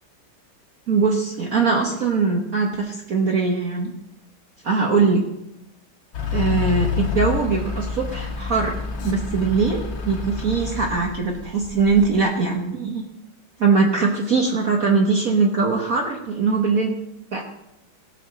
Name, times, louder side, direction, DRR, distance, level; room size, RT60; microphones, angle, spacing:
voice 1, 0.9-3.9 4.6-5.3 6.3-8.8 9.0-13.0 13.6-17.0 17.3-17.4, right 4 dB, 45° right, 1 dB, 1.5 m, -21 dB
Truck / Idling, 6.1-12.2, left 6 dB, 60° left, 2.5 m, -28 dB
16.5 x 6.7 x 6.2 m, 0.85 s
omnidirectional pair, 2.3 m